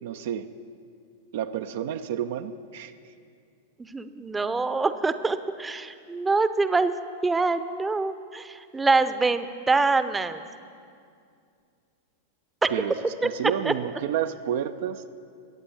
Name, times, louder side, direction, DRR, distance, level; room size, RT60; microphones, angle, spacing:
voice 1, 0.0-0.5 1.3-2.9 12.7-13.0 13.2-15.0, right 9 dB, 60° right, 8 dB, 0.6 m, -30 dB
voice 2, 3.8-6.9 7.2-10.4 12.6-12.7 13.6-13.7, right 3 dB, 15° right, 11 dB, 0.8 m, -25 dB
21.5 x 8.8 x 7.3 m, 2.3 s
figure-of-eight pair, 95°, 0 cm